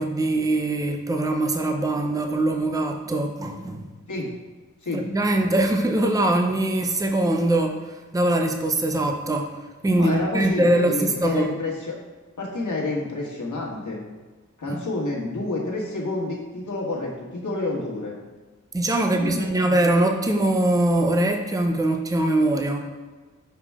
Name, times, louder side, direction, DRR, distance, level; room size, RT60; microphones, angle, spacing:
voice 1, 0.0-3.8 4.9-9.6 9.8-11.5 14.7-14.8 18.7-22.8, right 1 dB, 10° right, 3 dB, 0.6 m, -22 dB
voice 2, 9.9-12.0 12.4-14.0 14.6-18.2 19.0-19.8, left 2 dB, 75° left, -3 dB, 1.7 m, -29 dB
6.9 x 5.0 x 3.6 m, 1.3 s
wide cardioid pair, 95°, 30 cm